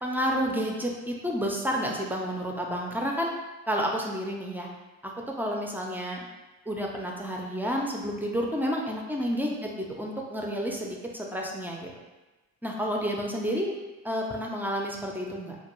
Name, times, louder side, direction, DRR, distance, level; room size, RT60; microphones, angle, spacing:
voice 1, 0.0-3.3 3.7-4.7 5.0-5.1 5.4-6.2 6.7-11.9 12.6-13.8 14.0-15.6, equal, 5° right, -1 dB, 0.3 m, -30 dB
2.5 x 2.2 x 2.9 m, 1.2 s
cardioid pair, 90°, 30 cm